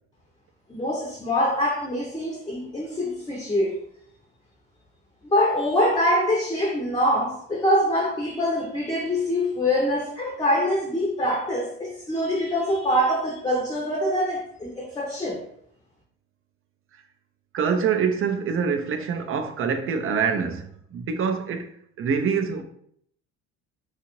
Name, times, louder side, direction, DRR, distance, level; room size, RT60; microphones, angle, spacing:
voice 1, 0.7-3.8 5.2-15.4, equal, 15° left, 0.6 m, -24 dB
voice 2, 17.5-21.7 22.0-22.6, right 6 dB, 45° right, 0.5 m, -25 dB
2.8 x 2.4 x 2.9 m
supercardioid pair, 85°, 31 cm